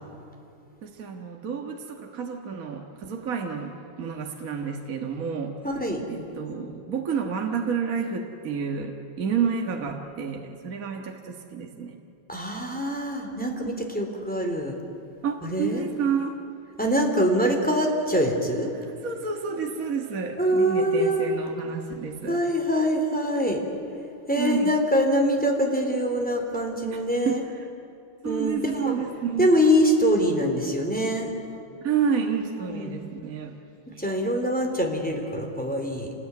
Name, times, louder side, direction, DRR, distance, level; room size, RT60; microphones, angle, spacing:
voice 1, 0.8-5.6 6.1-12.0 15.2-16.4 18.7-22.4 24.4-24.7 27.3-27.4 28.2-29.5 31.8-33.6 33.9-34.0, right 6 dB, 45° right, 3 dB, 1.9 m, -30 dB
voice 2, 5.6-6.0 12.3-14.7 15.4-15.9 16.8-18.7 20.4-21.3 22.3-23.6 24.3-27.4 28.2-28.9 29.4-31.3 32.7-33.0 33.9-36.1, equal, 5° left, 1 dB, 3.2 m, -24 dB
27.5 x 20.0 x 9.6 m, 2.8 s
omnidirectional pair, 2.2 m